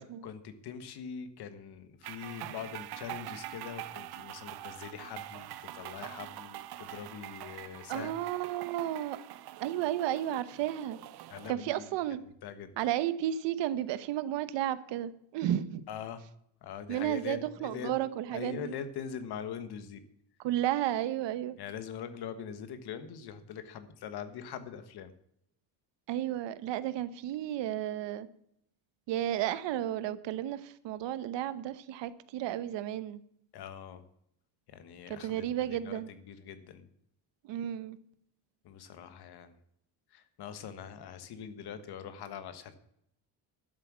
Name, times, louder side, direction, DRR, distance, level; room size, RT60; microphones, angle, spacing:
voice 1, 0.2-8.2 11.3-11.9 12.4-12.7 15.9-16.2 16.6-17.9 18.3-20.0 21.6-25.1 33.5-34.0 34.7-36.9 38.6-39.5 40.1-42.7, left 8 dB, 65° left, 11 dB, 1.5 m, -43 dB
sound 1, 2.0-11.5, right 14 dB, 60° right, 0.7 m, -44 dB
voice 2, 7.9-9.2 9.6-11.0 11.5-12.2 12.8-15.9 16.9-18.7 20.4-21.6 26.1-28.3 29.1-33.2 35.1-36.1 37.4-38.0, right 12 dB, 90° right, 14 dB, 1.0 m, -33 dB
12.5 x 7.6 x 7.4 m, 0.73 s
cardioid pair, 170°, 42 cm